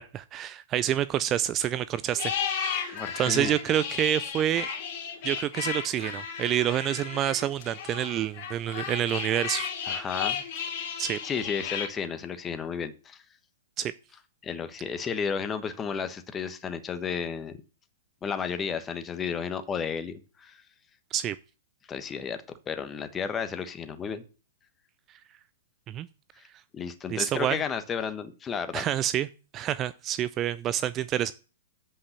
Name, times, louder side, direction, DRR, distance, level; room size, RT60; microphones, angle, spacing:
voice 1, 0.0-4.7 5.2-10.0 11.0-11.2 13.8-13.9 21.1-21.4 25.9-26.1 27.1-27.6 28.7-29.3 29.5-31.3, right 11 dB, 30° right, 16 dB, 0.4 m, -28 dB
sound 1, 2.1-11.9, left 7 dB, 45° left, 2.4 m, -34 dB
voice 2, 2.9-3.5 9.9-10.4 11.2-13.2 14.4-17.6 18.2-20.6 21.9-22.4 22.7-24.2 26.7-28.9, left 6 dB, 20° left, 9 dB, 1.2 m, -32 dB
8.2 x 5.5 x 6.9 m, 0.35 s
figure-of-eight pair, 115°, 0 cm